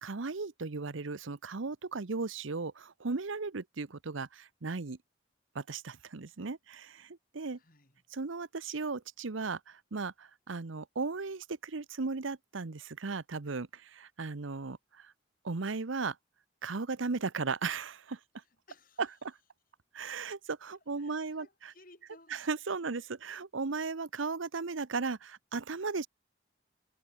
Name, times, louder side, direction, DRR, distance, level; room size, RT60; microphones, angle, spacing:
voice 1, 0.0-5.0 5.5-7.6 8.1-15.1 15.4-16.2 16.6-18.2 19.0-19.3 19.9-21.5 22.3-26.1, right 4 dB, 80° right, 0.9 m, -36 dB
voice 2, 7.5-8.0 18.4-19.2 20.7-22.4, left 2 dB, 45° left, 7.7 m, -60 dB
head